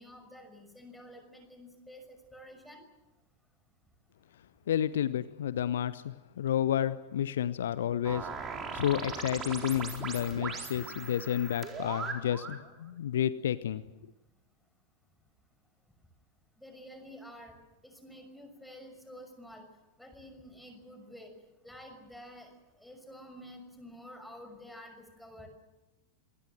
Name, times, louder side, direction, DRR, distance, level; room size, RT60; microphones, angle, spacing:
voice 1, 0.0-2.8 8.6-8.7 16.6-17.6 17.8-19.6 20.0-21.3 21.6-25.5, equal, ahead, 5 dB, 6.1 m, -50 dB
voice 2, 4.7-8.3 8.7-13.8, left 10 dB, 60° left, 16 dB, 0.8 m, -31 dB
sound 1, 8.0-12.6, right 5 dB, 25° right, 4.2 m, -39 dB
26.5 x 21.5 x 7.9 m, 1.0 s
figure-of-eight pair, 90°, 0 cm